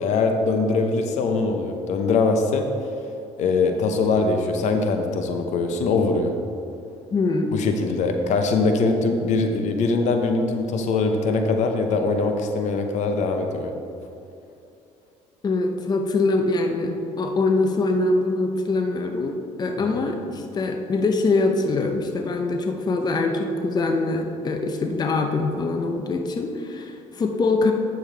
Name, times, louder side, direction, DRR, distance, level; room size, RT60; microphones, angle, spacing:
voice 1, 0.0-2.7 3.4-6.3 7.5-13.7, left 3 dB, 65° left, 5 dB, 0.8 m, -22 dB
voice 2, 7.1-7.6 15.4-27.7, left 3 dB, 30° left, 4 dB, 0.7 m, -23 dB
8.9 x 6.9 x 3.3 m, 2.6 s
supercardioid pair, 90°, 13 cm